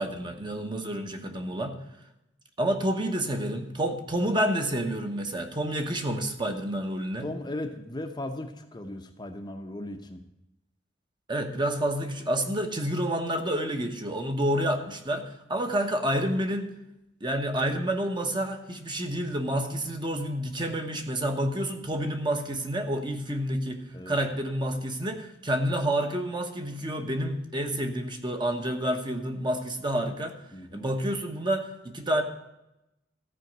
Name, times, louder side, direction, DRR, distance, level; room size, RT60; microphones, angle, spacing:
voice 1, 0.0-1.8 2.6-7.3 11.3-16.7 17.2-30.3 30.7-32.2, right 1 dB, 25° right, 5 dB, 1.1 m, -29 dB
voice 2, 7.2-10.2 23.9-24.2 30.5-30.9, left 1 dB, 20° left, 5 dB, 0.8 m, -37 dB
14.0 x 5.1 x 7.8 m, 0.89 s
head